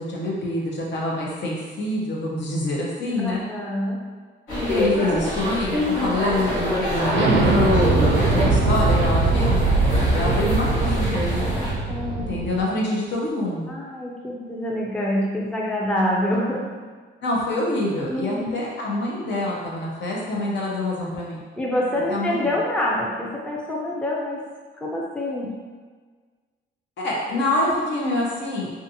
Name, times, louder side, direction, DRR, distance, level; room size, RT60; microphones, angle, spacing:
voice 1, 0.0-3.4 4.7-9.6 10.1-11.6 12.3-13.8 17.2-21.4 22.1-22.5 27.0-28.7, left 1 dB, 65° left, -3 dB, 0.7 m, -26 dB
voice 2, 3.2-4.0 11.9-12.3 12.6-12.8 13.7-16.7 18.1-18.6 21.6-24.4 24.8-25.5, left 1 dB, 5° left, -4 dB, 0.5 m, -26 dB
sound 1, 4.5-11.7, left 1 dB, 80° left, 1.1 m, -26 dB
Explosion, 7.1-12.6, right 3 dB, 70° right, 0.4 m, -21 dB
2.5 x 2.5 x 2.7 m, 1.5 s
cardioid pair, 90°, 20 cm